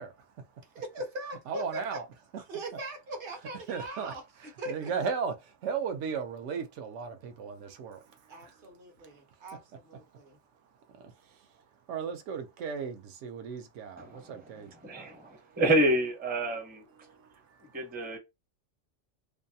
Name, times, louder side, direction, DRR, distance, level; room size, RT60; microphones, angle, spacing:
voice 1, 0.0-0.8 1.5-2.1 3.7-9.6 9.9-15.6 16.4-18.2, right 6 dB, 80° right, 0.9 m, -38 dB
voice 2, 0.7-1.6 2.5-4.2 4.6-4.9 8.3-10.4, right 1 dB, 50° right, 0.9 m, -40 dB
voice 3, 14.8-16.8 17.7-18.2, right 1 dB, 10° right, 0.5 m, -27 dB
2.7 x 2.2 x 2.6 m
omnidirectional pair, 1.2 m